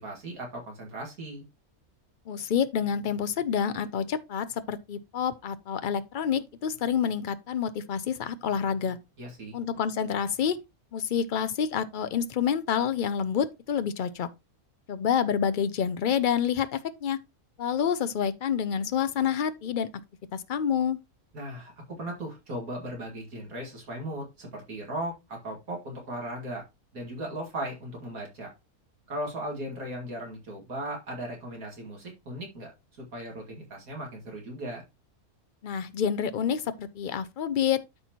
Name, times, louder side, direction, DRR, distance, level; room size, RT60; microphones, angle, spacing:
voice 1, 0.0-1.5 9.2-9.6 21.3-26.6 26.9-28.5 29.1-34.8, right 1 dB, 75° right, 2.5 m, -37 dB
voice 2, 2.3-9.0 9.5-10.6 10.9-14.3 14.9-17.2 17.6-19.9 20.3-21.0 35.6-37.8, left 8 dB, 65° left, 0.5 m, -28 dB
12.5 x 4.2 x 2.9 m
omnidirectional pair, 1.5 m